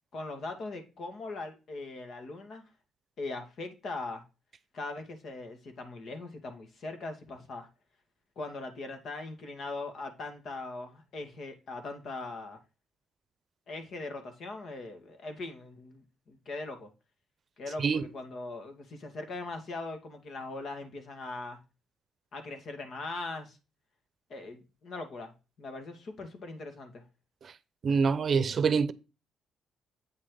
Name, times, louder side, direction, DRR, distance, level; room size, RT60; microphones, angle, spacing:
voice 1, 0.1-2.6 3.2-4.2 4.7-7.7 8.4-12.6 13.7-16.9 17.6-21.6 22.3-23.6 24.3-25.3 25.6-27.0, left 3 dB, 60° left, 2.1 m, -40 dB
voice 2, 27.8-28.9, right 5 dB, 50° right, 0.7 m, -26 dB
8.4 x 6.4 x 3.9 m
cardioid pair, 90°, 0 cm